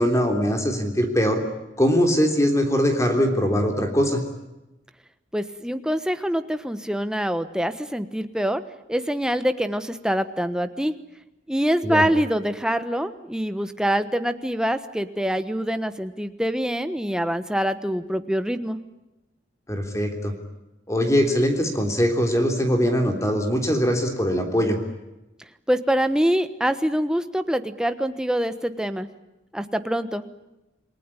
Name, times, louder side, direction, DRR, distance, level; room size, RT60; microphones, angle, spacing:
voice 1, 0.0-1.4 1.8-4.2 11.8-12.0 19.7-20.3 20.9-24.8, equal, 15° left, 4 dB, 3.4 m, -21 dB
voice 2, 5.3-8.6 8.9-11.0 11.5-18.8 25.7-29.1 29.5-30.2, equal, 5° right, 9 dB, 1.2 m, -25 dB
28.5 x 19.0 x 9.9 m, 0.98 s
head